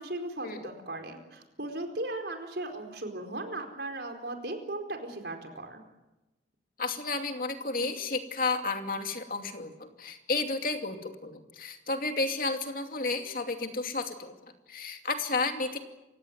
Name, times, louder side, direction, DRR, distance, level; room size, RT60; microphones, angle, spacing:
voice 1, 0.0-5.8, right 2 dB, 65° right, 5 dB, 4.4 m, -37 dB
voice 2, 6.8-15.8, left 3 dB, 50° left, 5 dB, 2.6 m, -32 dB
28.5 x 16.5 x 9.4 m, 1.0 s
head